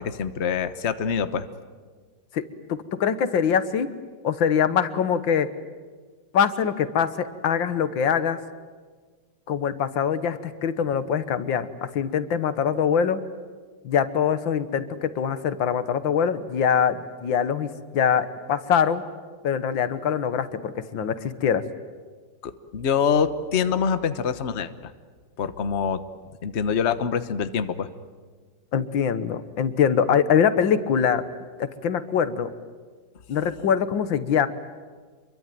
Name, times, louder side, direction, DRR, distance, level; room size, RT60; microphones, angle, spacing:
voice 1, 0.0-1.4 22.4-24.9 25.4-26.0 26.4-27.9, left 6 dB, 40° left, 11 dB, 1.2 m, -25 dB
voice 2, 2.7-3.9 4.2-5.5 6.3-8.4 9.5-13.2 13.8-19.0 19.4-21.6 28.7-31.2 31.6-32.5 33.3-34.5, left 7 dB, 85° left, 12 dB, 2.0 m, -23 dB
27.5 x 23.0 x 9.2 m, 1.5 s
omnidirectional pair, 2.0 m